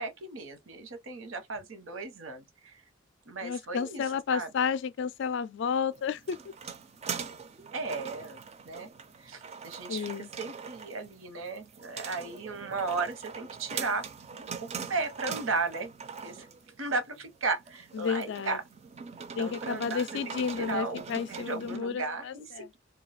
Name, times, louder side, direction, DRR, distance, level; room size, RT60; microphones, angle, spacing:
voice 1, 0.0-2.8 3.3-4.0 4.3-4.5 7.7-8.9 9.2-14.1 14.4-15.9 16.2-16.5 16.8-18.6 19.4-21.0 21.3-22.8, right 3 dB, 80° right, 0.9 m, -35 dB
voice 2, 3.4-6.4 9.9-10.3 17.9-18.6 19.4-22.7, left 6 dB, 60° left, 0.3 m, -31 dB
sound 1, 5.9-21.8, right 6 dB, 35° right, 0.4 m, -42 dB
2.4 x 2.3 x 4.0 m
head